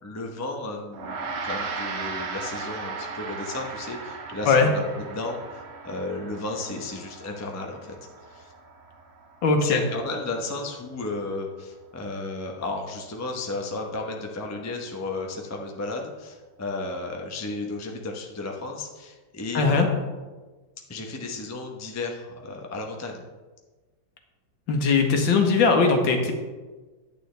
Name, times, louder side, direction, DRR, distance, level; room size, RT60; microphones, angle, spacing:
voice 1, 0.0-8.0 8.3-8.5 9.6-19.9 20.9-23.2, left 2 dB, 20° left, 1 dB, 0.4 m, -33 dB
Gong, 0.9-10.6, right 4 dB, 55° right, 0.7 m, -37 dB
voice 2, 9.4-9.8 19.5-19.9 24.7-26.3, left 4 dB, 75° left, 3 dB, 1.9 m, -20 dB
10.0 x 9.1 x 3.4 m, 1.3 s
omnidirectional pair, 2.2 m